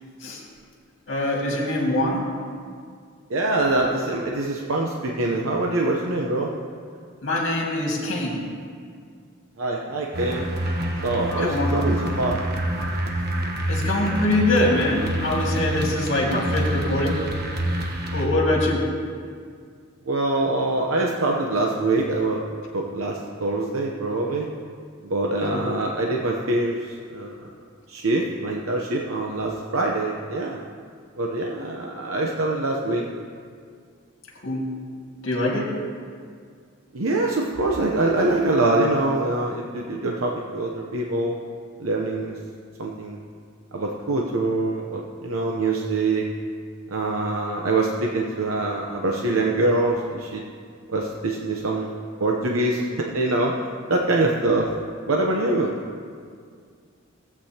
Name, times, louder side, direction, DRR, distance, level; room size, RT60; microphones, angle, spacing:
voice 1, 1.1-2.2 7.2-8.5 11.4-11.8 13.7-17.3 18.1-18.9 25.5-25.6 34.4-34.7 35.2-35.7, left 1 dB, 70° left, -2 dB, 2.1 m, -23 dB
voice 2, 3.3-6.5 9.6-10.5 11.0-12.4 20.1-22.4 22.7-24.5 25.0-27.5 27.9-30.6 31.2-33.0 36.9-41.4 41.8-42.3 42.8-43.2 43.7-46.3 46.9-50.4 50.9-51.9 52.2-53.5 53.9-54.7 55.1-55.7, right 2 dB, 90° right, 0 dB, 0.8 m, -24 dB
sound 1, 10.1-18.3, right 1 dB, 50° right, 1.1 m, -27 dB
16.5 x 8.4 x 2.9 m, 2.1 s
head